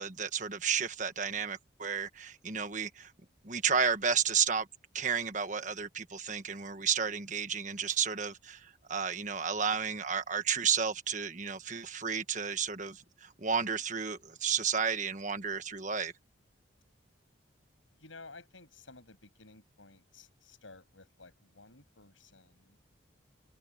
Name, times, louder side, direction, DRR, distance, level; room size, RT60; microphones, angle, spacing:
voice 1, 0.0-3.1 3.4-4.7 4.9-16.1, right 6 dB, 40° right, 1.4 m, -32 dB
voice 2, 18.0-22.8, left 3 dB, 90° left, 7.6 m, -54 dB
head